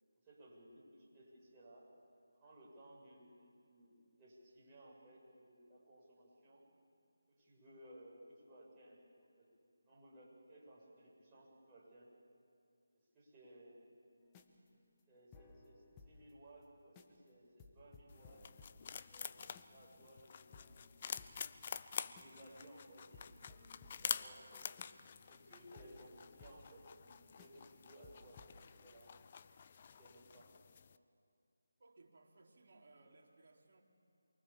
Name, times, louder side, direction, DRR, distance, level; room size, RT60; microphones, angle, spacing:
voice 1, 0.2-1.9 2.3-6.6 7.3-9.0 9.4-9.5 9.8-12.1 13.1-13.8 15.1-18.4 19.0-21.2 22.0-24.7 25.3-29.1 29.8-30.5, right 1 dB, 15° right, -7 dB, 7.5 m, -60 dB
sound 1, 14.2-16.3 16.6-16.7 16.9-17.3 17.6-19.9 20.2-20.3 20.5-22.5 22.8-22.9 23.1-27.1 27.4-27.7 28.0-28.6, left 4 dB, 15° left, 1.3 m, -62 dB
sound 2, 18.1-31.0, left 6 dB, 35° left, 0.7 m, -48 dB
voice 2, 31.8-33.8, right 2 dB, 45° right, -2 dB, 3.7 m, -64 dB
28.5 x 23.0 x 7.3 m, 2.5 s
figure-of-eight pair, 160°, 0 cm